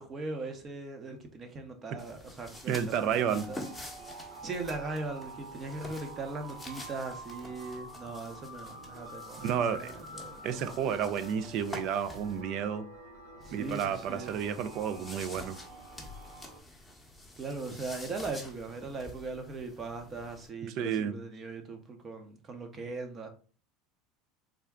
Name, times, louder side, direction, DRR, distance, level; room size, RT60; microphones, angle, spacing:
voice 1, 0.0-3.6 4.4-10.4 13.4-14.3 16.0-16.1 17.4-23.3, right 3 dB, 30° right, 0.8 m, -39 dB
sound 1, 2.0-12.4 13.4-20.5, left 2 dB, 5° left, 0.9 m, -48 dB
voice 2, 2.7-3.5 9.4-9.9 10.4-12.9 13.5-15.6 20.8-21.2, right 8 dB, 55° right, 0.4 m, -31 dB
sound 2, 3.1-16.6, right 2 dB, 85° right, 0.9 m, -48 dB
3.5 x 2.2 x 3.5 m
supercardioid pair, 115°, 0 cm